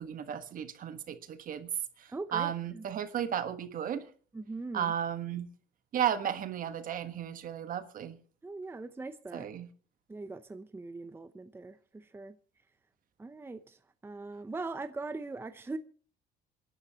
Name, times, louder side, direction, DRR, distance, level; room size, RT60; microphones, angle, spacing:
voice 1, 0.0-1.7 2.0-4.1 4.7-5.5 5.9-8.2 9.3-9.7, right 9 dB, 55° right, 1.4 m, -34 dB
voice 2, 2.1-2.8 4.3-4.9 8.4-9.5 10.1-12.4 13.2-15.8, right 3 dB, 15° right, 0.7 m, -41 dB
27.0 x 11.0 x 2.9 m
cardioid pair, 110°, 17 cm